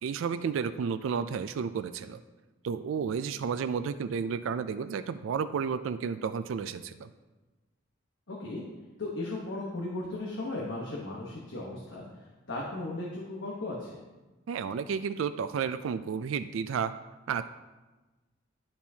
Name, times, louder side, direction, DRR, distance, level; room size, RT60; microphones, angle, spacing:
voice 1, 0.0-2.2 2.6-7.1 14.5-16.9 17.3-17.4, right 6 dB, 85° right, 12 dB, 0.3 m, -32 dB
voice 2, 8.3-8.6 9.0-12.0 12.5-14.0, left 2 dB, 70° left, -3 dB, 1.1 m, -36 dB
12.0 x 4.4 x 2.8 m, 1.2 s
head